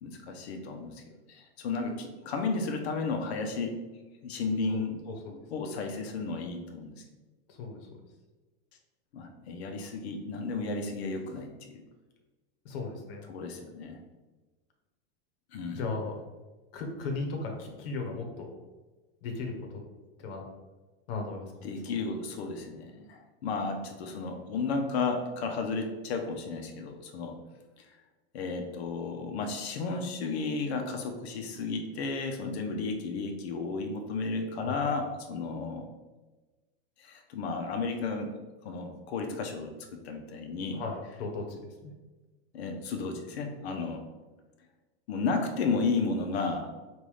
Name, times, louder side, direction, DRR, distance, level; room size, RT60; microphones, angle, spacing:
voice 1, 0.0-1.0 1.3-3.8 4.2-5.0 5.3-6.9 9.1-11.8 13.3-14.0 15.5-15.9 21.6-27.3 28.3-35.9 37.0-38.3 38.6-40.8 42.5-44.0 45.1-46.7, left 4 dB, 85° left, 4 dB, 0.8 m, -33 dB
voice 2, 12.6-13.2 15.7-16.1 16.7-18.5 19.2-19.5 20.2-20.4 21.1-21.7 34.6-34.8 40.7-41.4 41.8-41.9, left 3 dB, 65° left, 2 dB, 1.1 m, -36 dB
5.4 x 2.6 x 3.2 m, 1.2 s
supercardioid pair, 155°, 31 cm